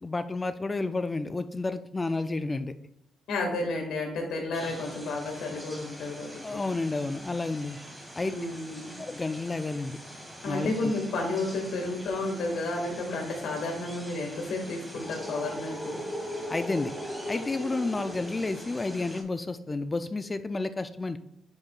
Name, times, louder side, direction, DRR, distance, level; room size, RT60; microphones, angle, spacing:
voice 1, 0.0-2.7 6.4-7.8 8.2-8.4 9.0-10.0 10.5-10.9 16.5-16.9 17.3-21.2, left 3 dB, 25° left, 11 dB, 0.3 m, -31 dB
voice 2, 3.3-6.6 8.2-9.0 10.4-16.0, left 2 dB, 80° left, 1 dB, 1.9 m, -32 dB
sound 1, 4.5-19.2, equal, 5° right, 1.6 m, -41 dB
9.4 x 5.1 x 2.4 m, 0.75 s
cardioid pair, 90°, 0 cm